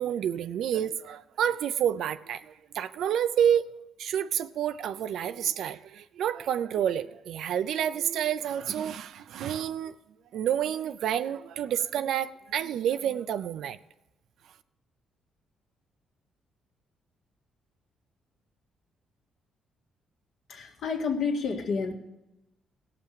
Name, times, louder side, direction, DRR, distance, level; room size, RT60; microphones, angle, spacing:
voice 1, 0.0-3.6 4.0-9.9 10.3-13.8, right 9 dB, 75° right, 12 dB, 0.5 m, -29 dB
voice 2, 20.5-21.9, left 5 dB, 65° left, 2 dB, 1.8 m, -29 dB
17.0 x 5.8 x 6.8 m, 0.95 s
cardioid pair, 90°, 0 cm